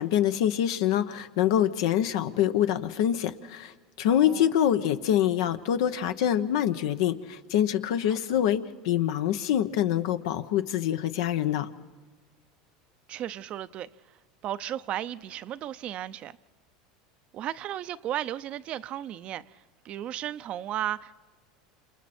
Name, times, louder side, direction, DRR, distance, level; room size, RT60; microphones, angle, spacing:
voice 1, 0.0-11.7, left 10 dB, 75° left, 1.0 m, -25 dB
voice 2, 4.1-4.4 8.1-8.4 13.1-13.9 14.4-16.4 17.3-19.4 19.8-21.2, right 12 dB, 45° right, 0.7 m, -35 dB
29.5 x 28.0 x 4.4 m
hypercardioid pair, 95°, 3 cm